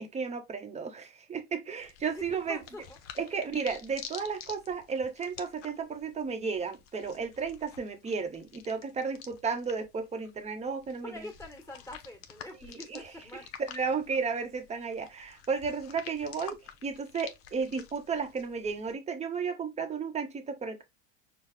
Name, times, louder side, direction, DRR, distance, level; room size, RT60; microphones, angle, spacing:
voice 1, 0.0-2.6 3.2-11.3 12.9-13.0 13.7-20.8, right 5 dB, 20° right, 1.0 m, -33 dB
sound 1, 1.8-18.9, left 9 dB, 50° left, 0.9 m, -50 dB
voice 2, 2.1-3.0 11.0-13.4, left 1 dB, 10° left, 1.8 m, -45 dB
5.6 x 2.3 x 3.3 m
hypercardioid pair, 95°, 30 cm